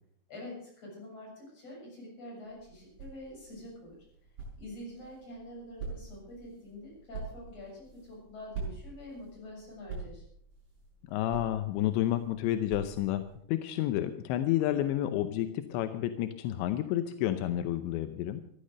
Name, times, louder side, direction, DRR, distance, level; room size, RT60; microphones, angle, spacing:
voice 1, 0.3-4.0 4.6-10.2, left 1 dB, 35° left, -3 dB, 8.1 m, -46 dB
sound 1, 2.4-13.4, right 4 dB, 50° right, 7.7 m, -46 dB
voice 2, 11.1-18.4, left 13 dB, 85° left, 9 dB, 3.0 m, -30 dB
15.5 x 12.0 x 6.4 m, 0.65 s
omnidirectional pair, 5.1 m